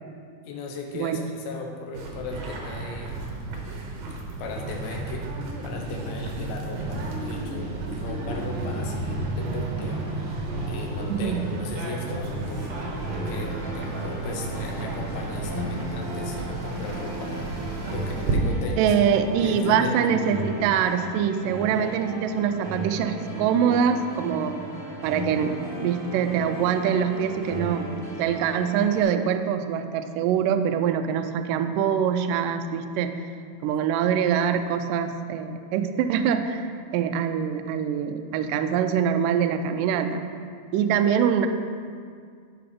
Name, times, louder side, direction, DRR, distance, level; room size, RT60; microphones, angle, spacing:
voice 1, 0.5-3.4 4.4-5.3 5.6-10.2 10.7-12.7 13.2-17.4 17.9-20.4, left 3 dB, 80° left, 1 dB, 3.0 m, -36 dB
sound 1, 1.9-18.4, right 2 dB, 70° right, 1.6 m, -32 dB
sound 2, 8.8-17.5, left 1 dB, 60° left, 3.8 m, -45 dB
sound 3, 12.5-29.0, right 2 dB, 35° right, 0.9 m, -36 dB
voice 2, 18.8-24.6 25.0-27.9 28.2-33.1 33.6-40.2 40.7-41.5, right 8 dB, 85° right, 7 dB, 1.9 m, -24 dB
12.0 x 5.0 x 5.2 m, 2.1 s
omnidirectional pair, 4.5 m